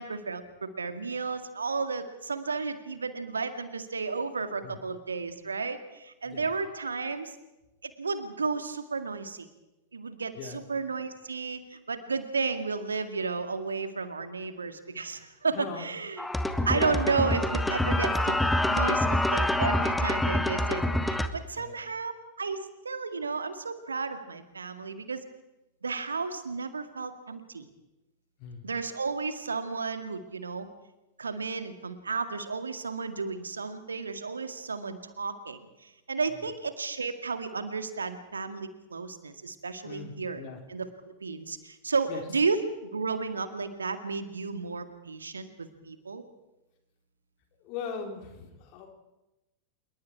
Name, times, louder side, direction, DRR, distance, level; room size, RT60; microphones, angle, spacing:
voice 1, 0.0-7.4 7.8-9.5 9.9-16.3 16.7-22.1 22.4-25.2 25.8-27.7 28.6-30.7 31.2-40.4 40.7-46.2, right 4 dB, 75° right, 9 dB, 2.0 m, -33 dB
voice 2, 15.5-15.8 16.7-17.1 21.6-21.7 28.4-28.6 39.8-40.6 42.1-42.2 47.6-48.9, left 5 dB, 45° left, 3 dB, 4.2 m, -39 dB
sound 1, 16.2-21.3, left 1 dB, 5° left, 1.5 m, -26 dB
26.5 x 22.5 x 4.8 m, 0.98 s
figure-of-eight pair, 90°, 0 cm